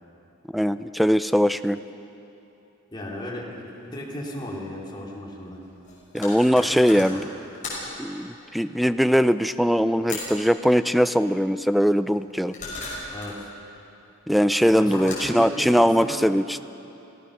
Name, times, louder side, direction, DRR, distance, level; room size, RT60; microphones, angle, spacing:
voice 1, 0.5-1.8 6.1-7.3 8.0-12.6 14.3-16.6, equal, ahead, 12 dB, 0.4 m, -21 dB
voice 2, 2.9-5.6 6.5-7.2 13.1-13.5 14.7-16.2, left 1 dB, 20° left, -3 dB, 3.2 m, -35 dB
sound 1, 3.7-3.8 4.0-4.1 5.3-8.1 10.0-10.5 12.1-13.4 14.3-16.1, left 3 dB, 35° left, 6.2 m, -37 dB
27.0 x 15.5 x 6.6 m, 3.0 s
head